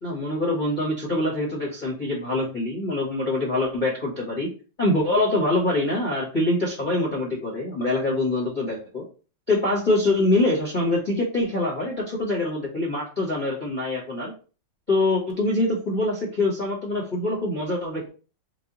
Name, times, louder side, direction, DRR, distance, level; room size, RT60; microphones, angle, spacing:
voice 1, 0.0-4.5 4.8-9.0 9.5-14.3 14.9-18.1, left 2 dB, 80° left, -4 dB, 0.4 m, -24 dB
5.8 x 2.0 x 3.9 m, 0.36 s
omnidirectional pair, 3.4 m